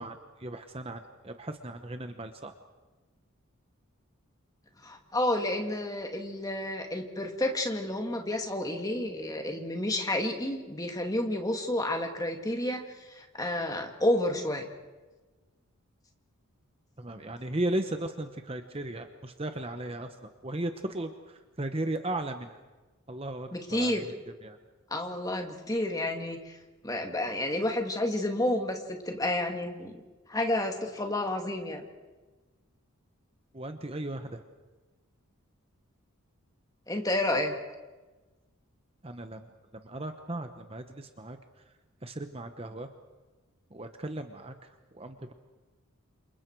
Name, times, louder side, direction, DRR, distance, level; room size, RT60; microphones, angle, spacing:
voice 1, 0.0-2.5 17.0-22.5 23.1-23.5 23.8-24.1 24.4-24.6 33.5-34.4 39.0-39.5 39.8-41.4 42.0-42.9 43.7-45.3, right 1 dB, 25° right, 7 dB, 1.0 m, -36 dB
voice 2, 4.8-12.8 13.1-14.7 23.5-24.1 24.9-26.6 26.8-29.9 30.3-31.8 36.9-37.5, left 1 dB, 15° left, 3 dB, 2.3 m, -30 dB
30.0 x 27.5 x 4.7 m, 1.2 s
head